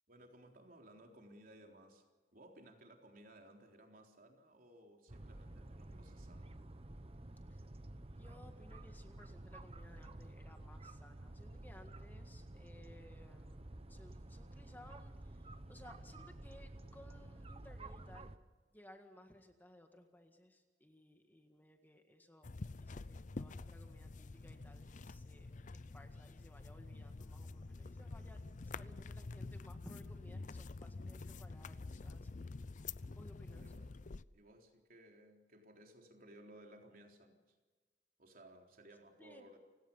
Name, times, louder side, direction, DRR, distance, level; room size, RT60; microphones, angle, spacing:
voice 1, 0.1-2.0 2.3-6.6 28.4-28.7 33.5-33.9 34.3-37.6 38.2-39.6, right 1 dB, 55° right, 2 dB, 3.8 m, -60 dB
sound 1, 5.1-18.4, right 1 dB, 35° right, 1.0 m, -51 dB
voice 2, 8.1-18.3 18.7-22.5 22.8-32.4 33.1-33.6 39.2-39.5, left 1 dB, 10° left, 5 dB, 1.7 m, -60 dB
sound 2, 22.4-34.2, left 3 dB, 45° left, 0.6 m, -48 dB
30.0 x 17.5 x 5.5 m, 1.3 s
head